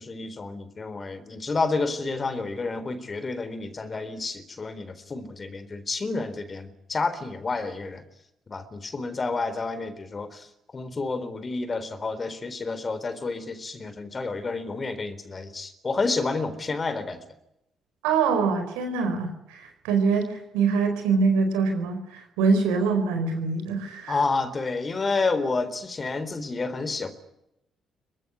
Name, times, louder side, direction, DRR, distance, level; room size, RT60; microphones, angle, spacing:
voice 1, 0.0-8.0 8.5-17.2 24.1-27.1, left 3 dB, 35° left, 12 dB, 3.9 m, -30 dB
voice 2, 18.0-24.2, right 4 dB, 70° right, 6 dB, 4.5 m, -24 dB
24.0 x 20.5 x 9.8 m, 0.82 s
figure-of-eight pair, 40°, 0 cm